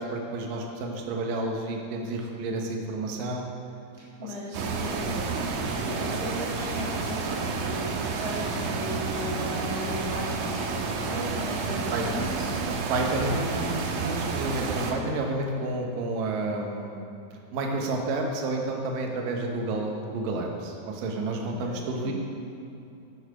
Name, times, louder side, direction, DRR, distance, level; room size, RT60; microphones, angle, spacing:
voice 1, 0.0-3.5 4.2-4.3 4.9-5.0 11.9-12.3 12.9-17.1 17.5-22.1, right 2 dB, 75° right, 1 dB, 2.5 m, -30 dB
voice 2, 3.9-12.7 13.2-13.6 21.4-21.8 22.0-22.1, left 1 dB, 40° right, -7 dB, 2.6 m, -37 dB
sound 1, 4.5-14.9, right 4 dB, 90° right, 2.7 m, -30 dB
11.0 x 7.1 x 4.9 m, 2.8 s
omnidirectional pair, 4.1 m